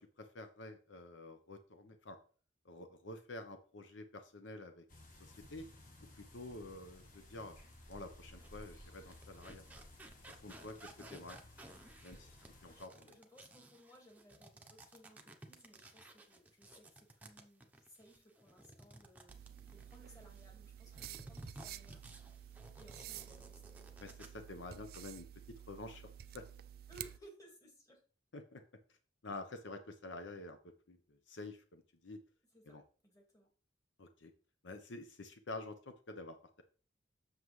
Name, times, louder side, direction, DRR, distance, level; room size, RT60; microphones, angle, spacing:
voice 1, 0.0-2.2 2.6-4.8 5.1-5.7 6.1-7.5 7.9-9.6 10.3-11.4 12.0-12.3 12.6-13.2 24.0-25.3 25.7-26.4 28.3-28.6 29.2-30.6 30.9-32.2 32.7-32.8 34.0-34.3 34.6-35.7 36.1-36.6, left 2 dB, 75° left, 7 dB, 0.8 m, -49 dB
sound 1, 4.9-12.8, left 1 dB, 40° left, 1.4 m, -57 dB
sound 2, 7.6-7.7 8.2-20.5 20.9-24.5 24.8-25.0, right 1 dB, 10° right, 0.7 m, -56 dB
voice 2, 12.1-19.4 19.7-24.0 26.9-28.0 32.5-33.5, right 1 dB, 20° left, 1 dB, 1.8 m, -62 dB
sound 3, 19.3-27.2, right 10 dB, 50° right, 0.3 m, -51 dB
7.6 x 6.4 x 3.2 m, 0.40 s
head